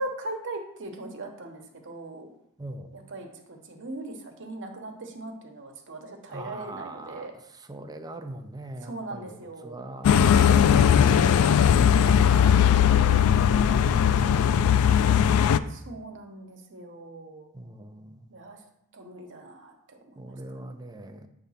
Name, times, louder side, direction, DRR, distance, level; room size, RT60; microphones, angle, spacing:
voice 1, 0.0-2.3 2.9-7.3 8.8-9.9 12.1-13.4 15.7-17.5 18.3-18.6 18.9-20.7, right 2 dB, 60° right, 3 dB, 1.1 m, -40 dB
voice 2, 2.6-2.9 6.3-7.3 7.7-9.4 9.6-12.2 12.9-15.7 17.5-18.3 20.2-21.3, right 1 dB, 20° right, 6 dB, 0.5 m, -41 dB
sound 1, 10.0-15.6, left 8 dB, 70° left, 0.3 m, -19 dB
8.4 x 3.5 x 5.7 m, 0.79 s
head